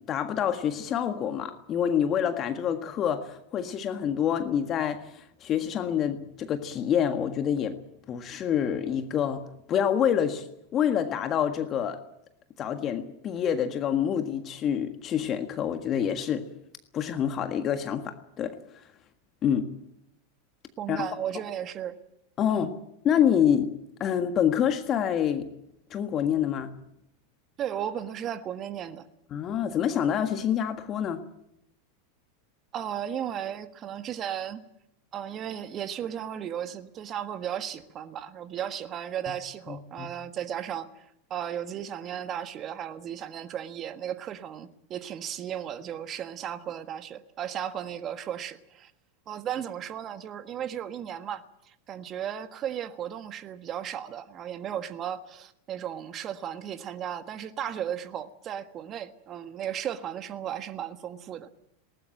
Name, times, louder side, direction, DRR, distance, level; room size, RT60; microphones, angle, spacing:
voice 1, 0.0-7.8 8.1-10.5 10.7-12.0 12.6-16.5 16.9-18.8 19.4-19.7 20.9-21.1 22.4-22.7 23.0-23.7 24.0-25.5 25.9-26.7 29.3-31.2 39.7-40.1, left 9 dB, 35° left, 7 dB, 1.6 m, -27 dB
voice 2, 20.8-22.0 22.5-22.7 27.6-29.0 32.7-34.6 35.1-48.9 49.3-61.5, right 9 dB, 35° right, 10 dB, 1.5 m, -35 dB
20.0 x 19.0 x 8.9 m, 0.79 s
figure-of-eight pair, 90°, 0 cm